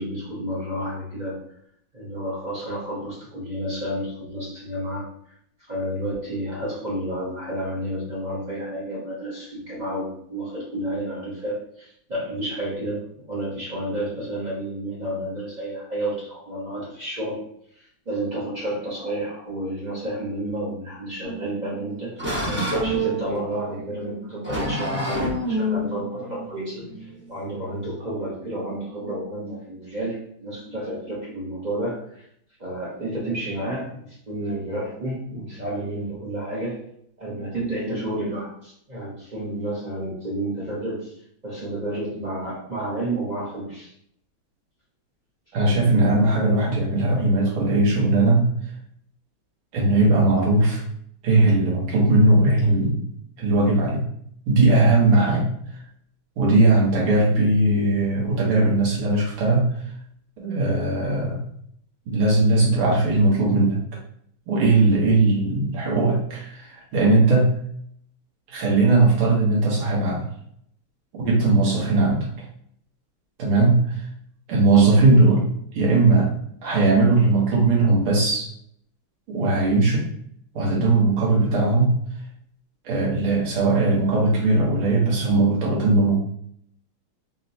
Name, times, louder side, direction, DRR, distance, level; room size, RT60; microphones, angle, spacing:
voice 1, 0.0-1.4 1.9-5.0 5.7-17.4 17.8-22.1 22.5-32.2 32.6-36.8 37.2-41.2 41.4-43.9, right 1 dB, 50° right, -8 dB, 0.5 m, -31 dB
sound 1, 21.2-27.8, equal, 10° right, 0.8 m, -29 dB
voice 2, 45.5-48.5 49.7-50.8 51.2-53.0 53.4-54.1 54.5-55.5 56.4-59.7 60.4-61.4 62.1-63.8 64.5-67.6 68.5-70.3 71.2-72.3 73.4-74.0 74.5-76.3 76.6-78.5 79.3-80.1 80.5-82.0 82.9-86.2, right 2 dB, 80° right, -3 dB, 1.9 m, -19 dB
4.2 x 2.1 x 2.7 m, 0.67 s
omnidirectional pair, 2.3 m